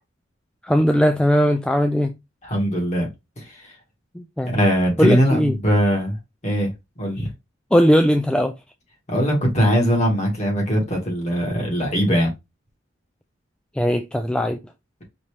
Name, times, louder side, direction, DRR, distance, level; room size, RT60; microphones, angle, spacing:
voice 1, 0.6-2.1 4.1-4.5 5.0-5.5 7.7-8.5 13.8-14.6, equal, 5° left, 0.3 m, -18 dB
voice 2, 2.4-3.1 3.4-3.6 4.5-6.2 6.4-7.3 9.1-12.3, equal, 35° left, 1.8 m, -21 dB
5.2 x 2.9 x 3.2 m
head